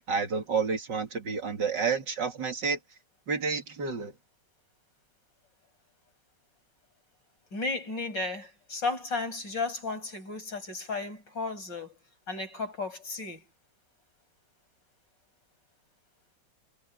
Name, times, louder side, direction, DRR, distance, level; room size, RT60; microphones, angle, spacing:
voice 1, 0.0-2.8 3.3-4.1, right 5 dB, 70° right, 3.0 m, -30 dB
voice 2, 7.5-12.0 12.3-13.4, left 3 dB, 70° left, 8.1 m, -34 dB
omnidirectional pair, 2.0 m